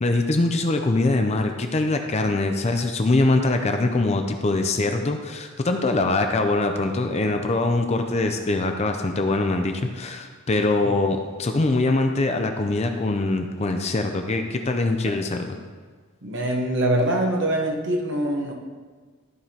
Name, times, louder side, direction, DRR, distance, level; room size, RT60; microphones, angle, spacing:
voice 1, 0.0-15.6, left 2 dB, 30° left, 5 dB, 0.5 m, -23 dB
voice 2, 16.2-18.5, right 1 dB, 55° right, 1 dB, 1.1 m, -23 dB
14.0 x 4.8 x 2.9 m, 1.5 s
head